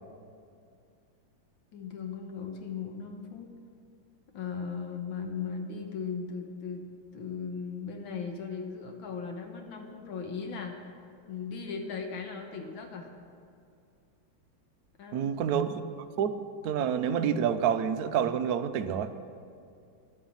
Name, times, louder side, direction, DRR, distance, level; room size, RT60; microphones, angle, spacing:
voice 1, 1.7-3.5 4.3-6.8 7.1-10.9 11.3-13.1 15.0-15.3, left 5 dB, 75° left, 4 dB, 1.9 m, -37 dB
voice 2, 15.1-15.8 16.2-19.1, right 8 dB, 70° right, 9 dB, 0.9 m, -28 dB
11.0 x 9.2 x 7.2 m, 2.4 s
omnidirectional pair, 2.2 m